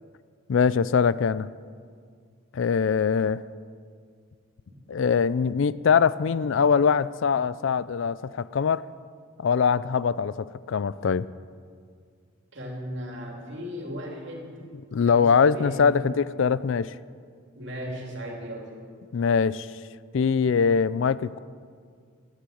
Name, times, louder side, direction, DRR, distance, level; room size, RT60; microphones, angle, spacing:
voice 1, 0.5-1.5 2.5-3.4 4.9-8.8 9.4-11.3 14.9-16.9 19.1-19.7 20.1-21.4, left 6 dB, 65° left, 18 dB, 0.4 m, -22 dB
voice 2, 12.5-14.5 15.0-15.9 17.5-18.7, equal, 55° right, 0 dB, 2.9 m, -36 dB
11.5 x 10.0 x 9.2 m, 2.1 s
head